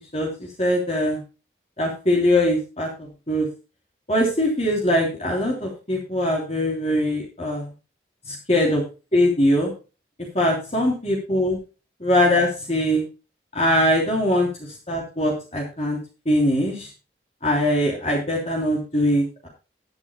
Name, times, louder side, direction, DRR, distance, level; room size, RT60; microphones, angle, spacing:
voice 1, 0.1-1.2 1.8-2.9 3.3-3.5 4.1-7.7 8.3-8.8 9.1-9.7 10.3-11.6 12.0-13.0 13.5-16.0 16.2-16.9 17.4-19.5, left 1 dB, 35° left, -1 dB, 3.2 m, -22 dB
20.5 x 8.2 x 2.2 m, 0.32 s
head